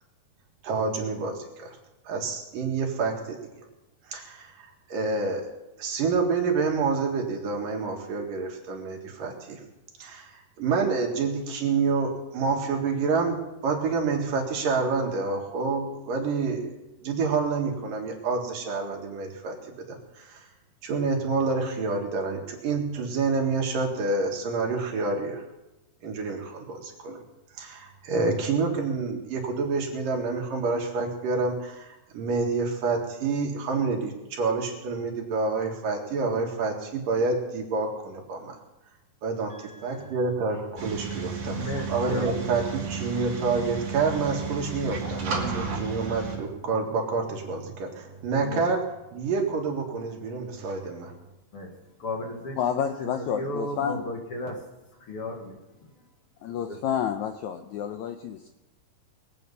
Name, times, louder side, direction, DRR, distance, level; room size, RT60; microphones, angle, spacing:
voice 1, 0.6-1.8 2.1-3.4 4.1-5.5 5.8-9.6 10.0-20.5 20.8-25.4 26.0-27.2 27.6-38.6 39.2-51.2, right 4 dB, 65° right, 0 dB, 3.5 m, -28 dB
voice 2, 39.5-40.1 41.5-42.3 48.4-48.6 51.5-51.7 52.0-52.6 53.0-54.6 55.1-55.9 56.7-56.8, left 1 dB, 45° left, 1 dB, 2.2 m, -35 dB
sound 1, 40.8-46.4, right 5 dB, 45° right, 3.4 m, -33 dB
voice 3, 52.6-54.1 56.4-58.5, left 8 dB, 80° left, 7 dB, 1.7 m, -29 dB
22.5 x 8.7 x 5.5 m, 0.98 s
omnidirectional pair, 4.2 m